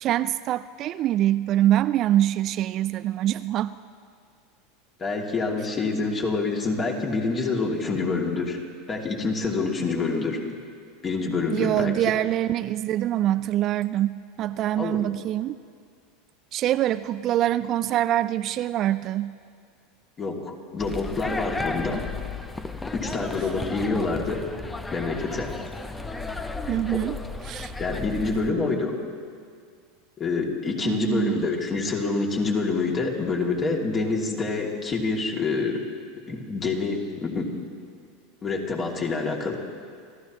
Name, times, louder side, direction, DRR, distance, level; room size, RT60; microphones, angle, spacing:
voice 1, 0.0-3.7 11.5-15.6 16.5-19.3 26.7-27.2 27.4-27.7 30.8-31.5, right 13 dB, 45° right, 13 dB, 0.4 m, -24 dB
voice 2, 5.0-8.6 8.9-10.4 11.0-11.9 14.8-15.0 20.2-22.1 22.8-24.5 24.9-25.5 26.9-27.0 27.8-29.0 30.2-35.9 36.3-37.5 38.4-39.6, left 3 dB, 30° left, -1 dB, 2.7 m, -27 dB
sound 1, 20.8-28.5, left 3 dB, 15° left, 0.8 m, -34 dB
29.0 x 14.5 x 3.1 m, 2.2 s
hypercardioid pair, 85°, 0 cm